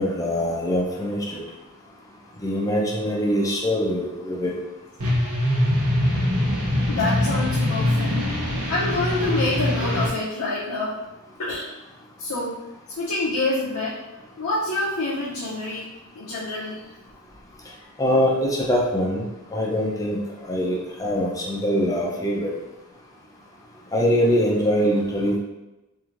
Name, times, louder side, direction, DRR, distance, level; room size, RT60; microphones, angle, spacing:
voice 1, 0.0-1.4 2.4-4.5 18.0-22.5 23.9-25.4, equal, 15° left, -4 dB, 0.5 m, -23 dB
sound 1, 5.0-10.1, left 1 dB, 80° right, 0.9 m, -23 dB
voice 2, 6.9-8.2 8.7-11.0 11.4-11.7 12.2-12.5 12.9-14.0 14.4-15.9 16.1-16.8, left 2 dB, 80° left, -8 dB, 0.6 m, -26 dB
3.1 x 2.6 x 2.5 m, 1.0 s
head